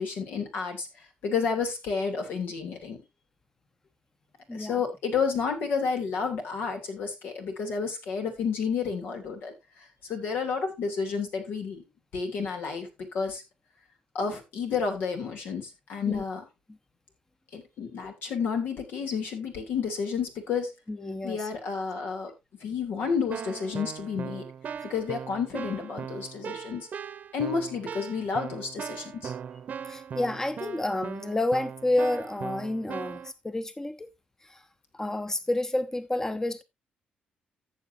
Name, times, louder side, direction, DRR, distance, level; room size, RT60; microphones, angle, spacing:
voice 1, 0.0-3.0 4.5-9.5 10.0-11.8 12.1-13.4 14.1-16.4 17.5-20.7 21.2-22.3 22.6-24.5 24.9-26.9 27.3-29.3, left 5 dB, 85° left, 3.0 m, -31 dB
voice 2, 4.5-4.8 16.1-16.2 20.9-21.5 29.8-34.1 34.4-34.6 34.9-36.6, left 1 dB, 15° left, 0.8 m, -29 dB
Keyboard (musical), 23.0-33.3, right 7 dB, 60° right, 0.8 m, -39 dB
14.0 x 6.9 x 2.7 m
cardioid pair, 80°, 3 cm